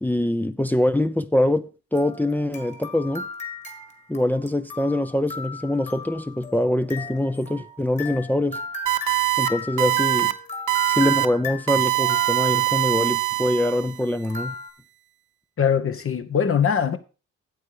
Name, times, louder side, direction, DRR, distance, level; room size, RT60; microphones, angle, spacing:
voice 1, 0.0-3.3 4.1-8.6 9.4-10.3 10.9-14.5, left 1 dB, 5° left, 0.6 m, -24 dB
sound 1, 1.9-12.8 14.2-14.7, left 2 dB, 25° left, 2.2 m, -36 dB
sound 2, 8.9-9.5 9.8-10.3 10.7-11.3 11.7-14.0, right 17 dB, 80° right, 0.8 m, -22 dB
voice 2, 15.6-17.0, left 7 dB, 45° left, 1.3 m, -21 dB
9.2 x 7.7 x 4.9 m
cardioid pair, 90°, 30 cm